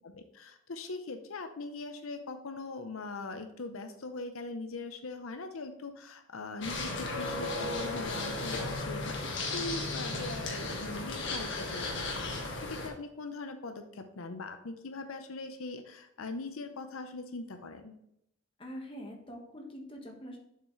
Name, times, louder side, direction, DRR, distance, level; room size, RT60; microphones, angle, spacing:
voice 1, 0.0-17.9, left 3 dB, 90° left, 7 dB, 0.7 m, -41 dB
sound 1, 6.6-12.9, left 2 dB, 60° left, 1.5 m, -35 dB
voice 2, 18.6-20.4, equal, 25° left, 1 dB, 1.4 m, -44 dB
7.2 x 5.9 x 3.1 m, 0.78 s
head